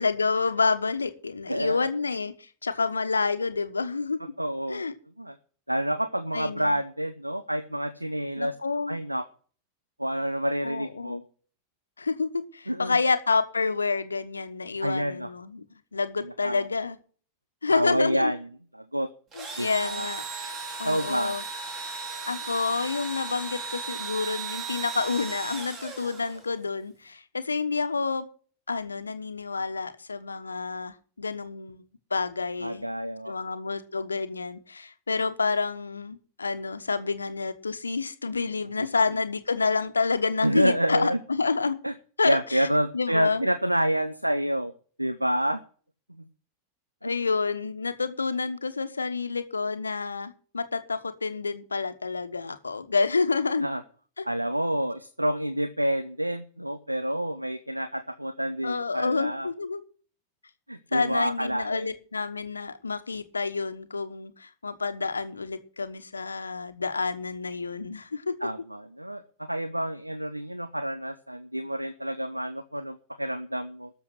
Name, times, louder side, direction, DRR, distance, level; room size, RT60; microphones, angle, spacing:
voice 1, 0.0-4.2 4.7-4.9 6.3-6.8 8.4-9.0 10.6-11.2 12.0-15.6 15.9-17.0 17.6-18.3 19.4-20.2 20.8-21.4 22.3-28.3 28.7-31.8 32.1-32.9 33.3-41.8 42.2-42.7 42.9-43.4 47.0-53.7 54.2-54.3 58.6-59.8 60.9-68.4, left 4 dB, 75° left, 10 dB, 1.2 m, -28 dB
voice 2, 4.4-4.9 5.2-5.4 5.7-8.5 8.9-9.2 10.0-11.2 12.7-13.0 14.8-15.3 16.2-16.7 17.7-18.5 18.7-19.1 19.6-20.1 20.8-21.4 32.6-33.3 38.8-38.9 40.4-41.2 41.8-41.9 42.2-44.7 45.0-45.6 46.1-46.2 47.0-47.1 53.6-53.8 54.2-59.5 60.7-61.9 68.4-73.9, right 1 dB, 85° right, 12 dB, 0.7 m, -28 dB
Engine / Drill, 19.3-26.6, right 4 dB, 30° right, 4.3 m, -36 dB
13.0 x 7.0 x 7.9 m, 0.42 s
figure-of-eight pair, 90°, 0 cm